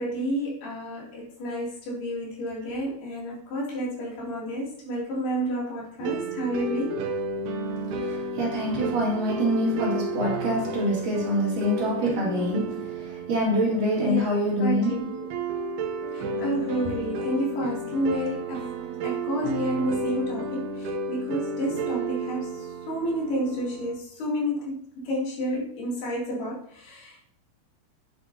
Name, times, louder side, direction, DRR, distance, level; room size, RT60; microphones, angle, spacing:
voice 1, 0.0-7.1 14.0-15.3 16.1-18.7 19.0-27.2, equal, 80° left, 4.9 m, -30 dB
sound 1, 6.0-24.0, right 3 dB, 85° right, 2.9 m, -33 dB
voice 2, 8.0-15.1, equal, 60° right, 3.7 m, -25 dB
9.9 x 7.8 x 2.9 m
omnidirectional pair, 4.5 m